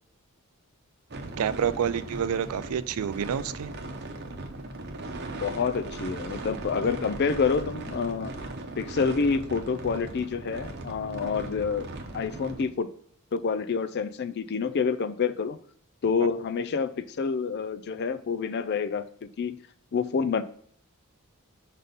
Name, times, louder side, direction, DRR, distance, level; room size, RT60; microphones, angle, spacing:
sound 1, 1.1-12.7, right 2 dB, 50° right, 0.8 m, -38 dB
voice 1, 1.4-3.7, right 8 dB, 85° right, 0.4 m, -28 dB
voice 2, 5.3-8.3 8.8-11.9 12.1-12.9 13.3-15.6 16.0-19.6 19.9-20.4, left 5 dB, 50° left, 0.4 m, -28 dB
5.4 x 4.0 x 5.2 m
head